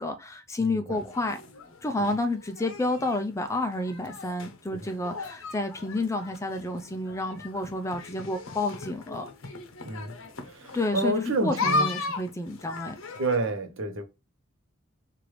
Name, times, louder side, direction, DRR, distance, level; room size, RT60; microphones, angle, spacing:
voice 1, 0.0-1.4 1.8-9.3 10.7-13.0, left 2 dB, 15° left, 0.4 m, -30 dB
voice 2, 0.6-1.0 2.0-2.1 4.7-4.9 9.8-10.1 10.4-11.9 13.2-14.0, right 2 dB, 65° right, 0.8 m, -29 dB
sound 1, 0.9-13.5, left 3 dB, 70° left, 0.8 m, -36 dB
4.7 x 2.5 x 3.1 m
head